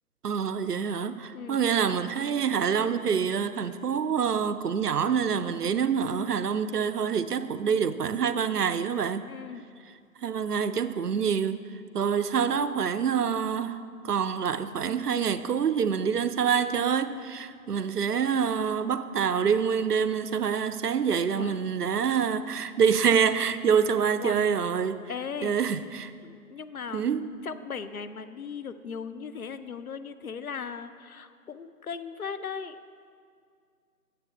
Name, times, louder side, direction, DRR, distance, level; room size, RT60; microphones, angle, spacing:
voice 1, 0.2-9.3 10.2-11.6 11.9-25.0 25.4-26.1 26.9-27.3, right 7 dB, 85° right, 0.5 m, -26 dB
voice 2, 9.3-9.6 21.3-21.5 24.2-24.5 25.1-25.5 26.2-27.0 27.4-32.8, left 6 dB, 70° left, 0.5 m, -37 dB
8.6 x 7.7 x 3.3 m
figure-of-eight pair, 160°, 45 cm